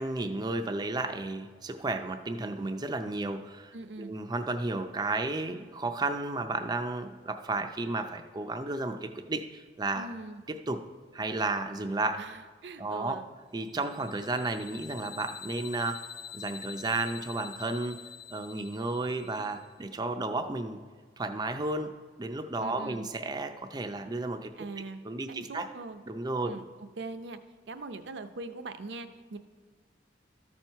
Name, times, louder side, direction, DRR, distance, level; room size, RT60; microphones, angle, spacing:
voice 1, 0.0-10.1 10.7-10.8 11.1-12.2 12.8-13.2 13.5-18.0 18.3-20.8 21.2-21.9 22.2-24.5 25.0-25.7 26.1-26.5, right 2 dB, 20° right, 6 dB, 0.5 m, -33 dB
voice 2, 3.7-4.1 9.9-10.4 12.2-13.3 22.6-23.1 24.6-25.0 25.3-26.0 26.4-26.6 27.0-27.4 27.7-29.4, right 3 dB, 70° right, 10 dB, 0.6 m, -41 dB
sound 1, 13.7-19.6, left 8 dB, 55° left, 0.4 m, -46 dB
13.0 x 4.5 x 5.6 m, 1.5 s
head